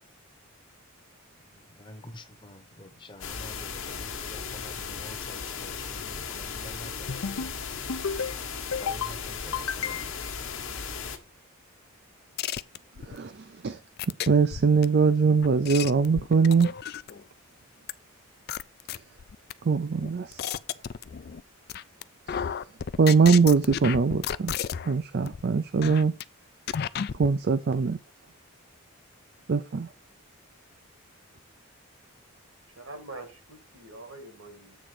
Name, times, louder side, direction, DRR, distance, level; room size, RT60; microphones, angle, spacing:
voice 1, 1.4-7.6 8.8-10.3 10.6-10.8, left 1 dB, 20° left, 0.8 m, -47 dB
sound 1, 3.2-11.2, left 6 dB, 65° left, 1.2 m, -36 dB
sound 2, 7.1-7.5 7.9-8.3 8.7-9.1 9.5-10.3, left 6 dB, 80° left, 0.7 m, -32 dB
sound 3, 12.4-13.2 14.0-14.8 15.4-17.2 17.9-18.0 18.5-19.5 20.0-21.4 21.7-22.0 22.3-24.9 25.2-25.4 25.8-26.2 26.7-27.3, left 8 dB, 45° left, 0.3 m, -32 dB
voice 2, 13.0-13.8 14.3-16.7 19.6-20.5 22.3-22.4 23.0-26.1 27.2-28.0 29.5-29.9, right 5 dB, 45° right, 0.4 m, -22 dB
voice 3, 32.8-34.8, right 2 dB, 75° right, 2.2 m, -44 dB
8.3 x 3.7 x 6.0 m
head